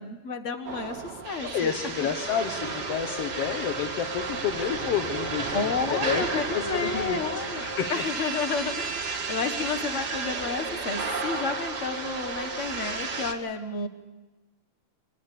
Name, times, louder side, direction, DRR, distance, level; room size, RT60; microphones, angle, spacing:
voice 1, 0.0-1.7 2.0-2.1 5.5-8.9 9.3-13.9, left 4 dB, 40° left, 8 dB, 1.1 m, -31 dB
sound 1, 0.6-13.3, right 4 dB, 35° right, 2.4 m, -32 dB
voice 2, 1.4-6.3 6.5-7.2 7.6-7.9, left 8 dB, 60° left, 6 dB, 1.8 m, -30 dB
25.0 x 19.0 x 6.8 m, 1.2 s
omnidirectional pair, 3.8 m